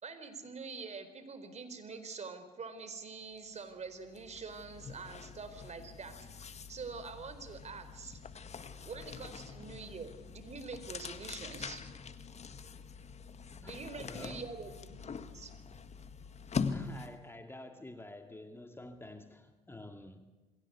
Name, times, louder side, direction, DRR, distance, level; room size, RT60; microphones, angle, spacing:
voice 1, 0.0-8.2 8.8-11.8 13.6-15.0 15.3-15.5, right 4 dB, 35° right, 4.6 m, -45 dB
sound 1, 3.4-3.6 3.9-17.3, left 5 dB, 35° left, 1.9 m, -43 dB
voice 2, 13.6-14.5 16.5-20.3, left 2 dB, 10° left, 2.3 m, -49 dB
28.5 x 21.5 x 8.3 m
hypercardioid pair, 60°, 19 cm